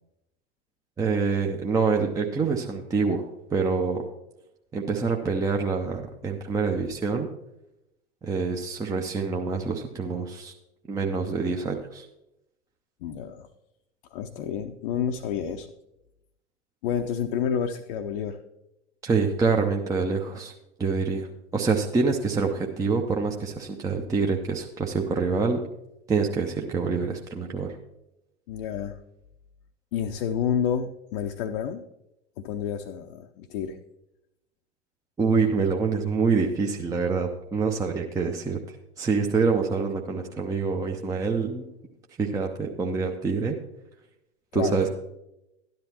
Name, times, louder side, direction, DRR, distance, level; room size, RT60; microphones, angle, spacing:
voice 1, 1.0-4.0 4.7-7.3 8.2-10.5 10.9-12.0 19.0-20.5 20.8-21.3 21.5-25.6 26.1-27.7 35.2-38.6 39.0-41.6 42.2-43.6 44.5-44.9, right 4 dB, 10° right, 2 dB, 0.6 m, -26 dB
voice 2, 13.0-13.5 14.1-15.7 16.8-18.4 28.5-29.0 29.9-31.8 32.4-33.8 44.5-44.9, left 8 dB, 50° left, 4 dB, 0.6 m, -29 dB
12.5 x 10.5 x 2.9 m, 0.89 s
figure-of-eight pair, 90°, 34 cm